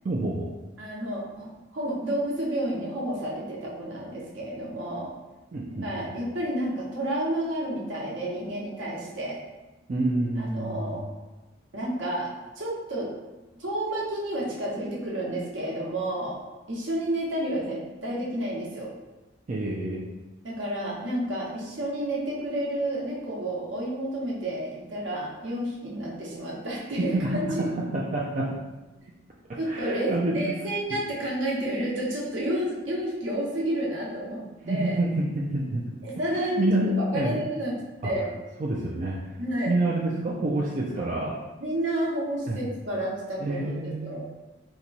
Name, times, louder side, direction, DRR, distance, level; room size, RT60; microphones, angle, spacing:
voice 1, 0.0-0.5 5.5-5.9 9.9-11.0 19.5-20.0 27.0-28.6 29.5-30.6 30.9-31.0 34.7-35.8 36.3-37.4 38.0-38.1 38.6-39.2 39.7-41.4 42.5-42.6 43.4-44.2, right 2 dB, 40° right, -4 dB, 0.4 m, -28 dB
voice 2, 0.8-5.1 5.8-9.4 10.4-11.0 11.7-12.3 12.5-13.1 13.6-16.4 16.7-18.9 20.4-27.7 29.6-35.0 36.0-37.7 38.0-38.4 39.4-39.7 41.6-44.2, right 1 dB, 75° right, -4 dB, 0.9 m, -30 dB
2.9 x 2.2 x 3.9 m, 1.1 s
head